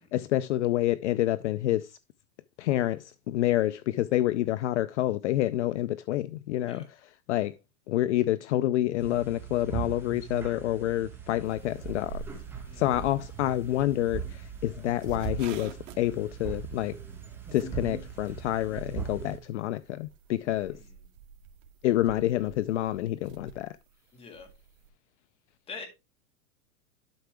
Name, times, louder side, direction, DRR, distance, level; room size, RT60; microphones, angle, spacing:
voice 1, 0.0-2.0 2.6-7.5 7.9-12.2 12.7-17.0 17.5-20.8 21.8-23.7, left 14 dB, 55° left, 0.6 m, -28 dB
sound 1, 9.0-19.4, right 7 dB, 5° right, 1.5 m, -39 dB
sound 2, 11.4-24.9, right 6 dB, 60° right, 2.0 m, -49 dB
voice 2, 20.6-21.0 24.1-24.5 25.7-25.9, left 4 dB, 15° left, 1.8 m, -44 dB
12.0 x 5.7 x 3.4 m
supercardioid pair, 165°, 44 cm